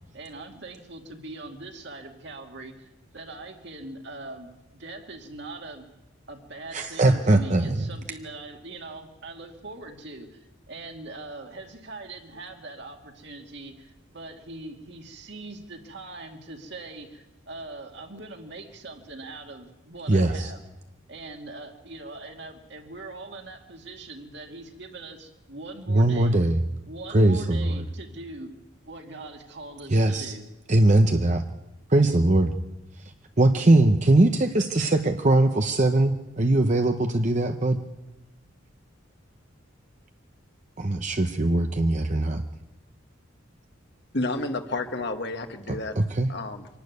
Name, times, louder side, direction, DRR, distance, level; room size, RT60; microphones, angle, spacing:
voice 1, 0.1-5.9 6.3-20.6 21.1-26.4 26.9-28.5 28.8-30.4, right 2 dB, 55° right, 3 dB, 2.3 m, -41 dB
voice 2, 6.7-7.9 20.1-20.5 25.9-26.6 27.1-27.8 29.9-30.3 30.7-31.4 31.9-32.5 33.4-37.8 40.8-42.4 45.7-46.3, right 2 dB, 35° right, 6 dB, 0.8 m, -21 dB
voice 3, 44.1-46.0 46.3-46.7, left 2 dB, 55° left, 6 dB, 1.5 m, -30 dB
25.0 x 11.5 x 9.5 m, 1.0 s
head